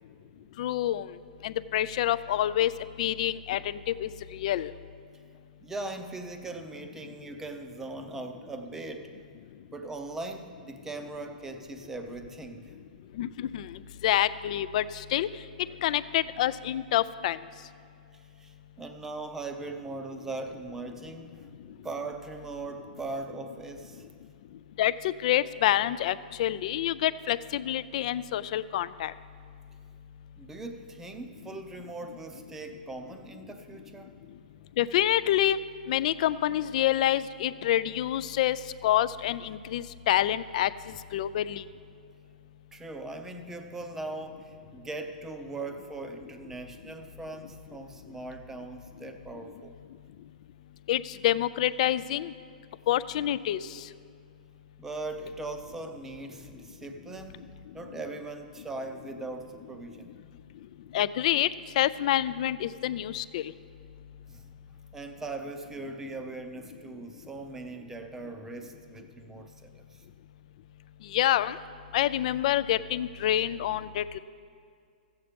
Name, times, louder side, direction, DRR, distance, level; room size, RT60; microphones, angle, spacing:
voice 1, 0.6-1.0 1.4-2.7 3.0-3.6 4.0-4.7 13.2-13.6 14.0-14.8 15.1-15.3 15.8-17.4 24.8-24.9 25.2-29.1 34.8-35.6 35.9-38.6 38.8-40.7 41.1-41.6 50.9-52.3 52.9-53.6 60.9-61.5 61.8-63.4 71.1-71.6 71.9-74.2, left 12 dB, 50° left, 16 dB, 0.4 m, -27 dB
voice 2, 5.6-9.1 9.7-12.7 18.1-21.5 21.8-24.1 30.4-34.2 42.7-49.7 54.8-57.5 57.7-60.2 64.3-70.0, right 2 dB, 10° right, 6 dB, 0.6 m, -40 dB
14.0 x 8.2 x 5.1 m, 2.3 s
hypercardioid pair, 155°, 5 cm